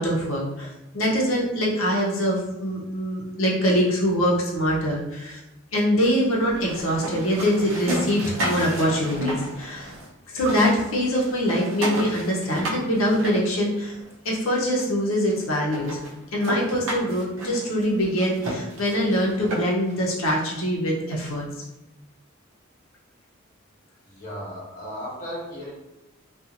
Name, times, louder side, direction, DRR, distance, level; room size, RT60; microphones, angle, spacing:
voice 1, 0.0-5.4 5.7-9.9 10.3-13.9 14.2-16.0 16.3-21.5, equal, 85° left, -2 dB, 0.7 m, -24 dB
sound 1, 6.4-10.1 10.3-14.1 14.8-14.9 15.3-15.4 15.7-19.9, right 1 dB, 80° right, 0.6 m, -32 dB
voice 2, 24.0-25.7, equal, 40° left, -6 dB, 1.0 m, -35 dB
2.8 x 2.4 x 2.4 m, 0.95 s
head